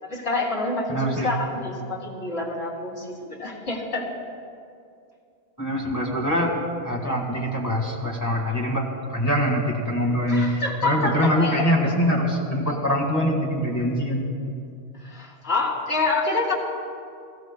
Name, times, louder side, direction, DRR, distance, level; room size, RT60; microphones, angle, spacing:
voice 1, 0.0-4.1 10.3-11.6 15.1-16.5, left 3 dB, 70° left, -2 dB, 2.5 m, -27 dB
voice 2, 0.9-1.3 5.6-6.6 6.8-14.3, equal, 15° left, -2 dB, 1.8 m, -24 dB
19.5 x 16.0 x 2.3 m, 2.4 s
omnidirectional pair, 1.1 m